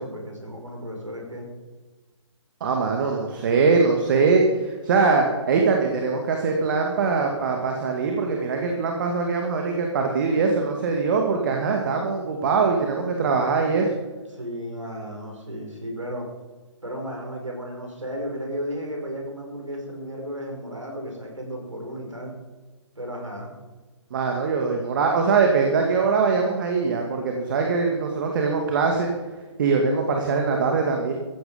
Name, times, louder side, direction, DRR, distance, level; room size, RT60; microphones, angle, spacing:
voice 1, 0.0-1.5 14.3-16.3 16.8-22.3 23.0-23.5, equal, 90° right, 0 dB, 6.2 m, -34 dB
voice 2, 2.6-13.9 24.1-29.1 29.6-31.1, right 4 dB, 40° right, 2 dB, 2.3 m, -22 dB
17.0 x 15.0 x 5.3 m, 1.3 s
figure-of-eight pair, 140°, 16 cm